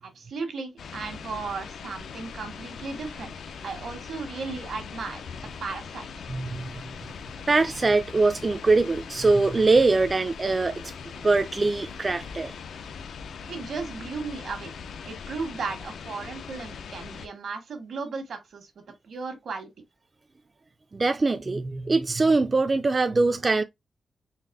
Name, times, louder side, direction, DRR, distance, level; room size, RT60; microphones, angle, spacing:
voice 1, 0.0-3.3 3.6-5.2 5.6-6.1 13.5-14.7 15.0-19.7, right 4 dB, 80° right, 1.3 m, -35 dB
sound 1, 0.8-17.3, left 6 dB, 90° left, 0.4 m, -40 dB
voice 2, 6.3-6.7 7.5-10.9 11.2-12.5 20.9-23.6, right 3 dB, 35° right, 0.3 m, -22 dB
4.0 x 3.3 x 2.5 m
cardioid pair, 90°, 0 cm